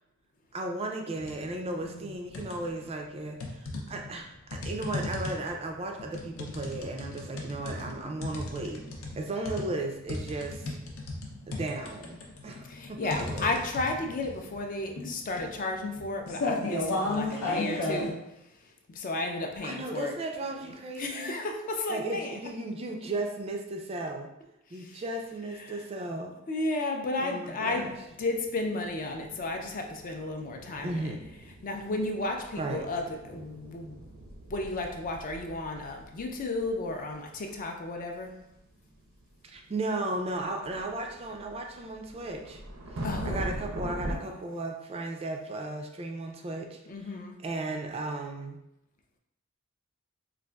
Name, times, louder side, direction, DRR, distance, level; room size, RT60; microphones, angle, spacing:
voice 1, 0.5-8.8 9.1-10.7 11.5-13.5 17.3-18.1 19.6-21.4 21.9-24.3 24.7-26.3 27.2-27.9 30.8-31.3 32.5-32.8 39.4-42.6 43.2-46.8 47.4-48.6, right 2 dB, 30° right, 2 dB, 0.3 m, -35 dB
sound 1, 1.1-1.5 1.9-2.8 3.4-18.1, left 2 dB, 80° left, 0.6 m, -35 dB
voice 2, 1.8-2.1 12.6-20.1 20.6-22.4 24.7-25.0 25.5-25.8 26.5-27.9 28.2-31.1 31.6-34.0 34.5-38.3 43.0-43.5 44.1-44.4 46.9-47.3, left 2 dB, 40° left, 3 dB, 0.4 m, -33 dB
sound 2, 27.7-44.2, right 1 dB, 90° right, 0.6 m, -43 dB
4.0 x 2.4 x 2.3 m, 0.85 s
head